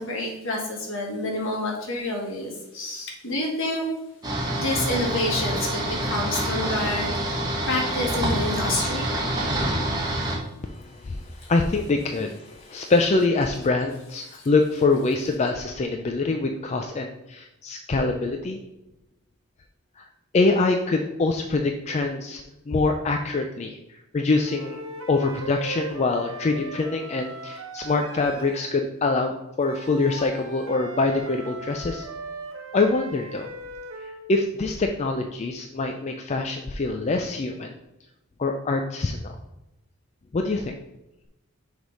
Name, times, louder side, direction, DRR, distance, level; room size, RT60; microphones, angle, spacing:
voice 1, 0.0-3.9 4.5-7.4 7.7-9.1 11.4-11.5 12.8-12.9 14.3-14.5, left 2 dB, 65° left, 0 dB, 1.7 m, -28 dB
sound 1, 4.2-10.4, right 1 dB, 20° right, 1.2 m, -26 dB
voice 2, 10.6-18.6 20.0-20.1 20.3-23.8 24.1-24.8 25.1-29.3 29.6-32.1 32.7-33.5 34.0-37.8 38.4-39.4 40.3-40.7, left 3 dB, 30° left, 4 dB, 0.4 m, -24 dB
sound 2, 24.4-28.7 29.6-34.3, right 2 dB, 65° right, 0.9 m, -38 dB
6.4 x 3.5 x 4.8 m, 0.93 s
head